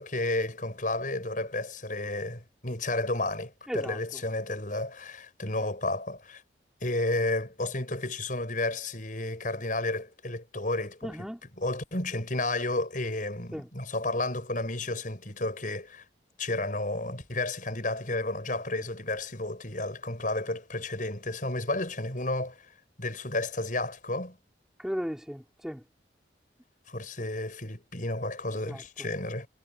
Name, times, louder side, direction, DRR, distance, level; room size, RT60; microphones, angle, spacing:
voice 1, 0.0-6.4 6.8-11.3 11.6-16.0 16.4-22.7 23.0-24.4 26.9-29.5, left 2 dB, 45° left, 7.2 m, -32 dB
voice 2, 3.7-4.0 11.0-11.4 13.5-13.7 24.8-25.8 28.6-28.8, equal, 5° right, 3.2 m, -35 dB
head